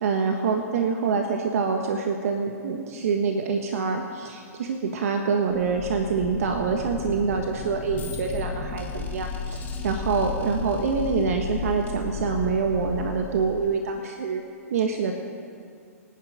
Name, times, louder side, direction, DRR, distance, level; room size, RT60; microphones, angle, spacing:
voice 1, 0.0-14.4 14.7-15.1, right 5 dB, 65° right, 3 dB, 1.4 m, -26 dB
sound 1, 5.5-14.0, left 5 dB, 20° left, 2.8 m, -34 dB
25.0 x 9.6 x 5.1 m, 2.2 s
hypercardioid pair, 115°, 8 cm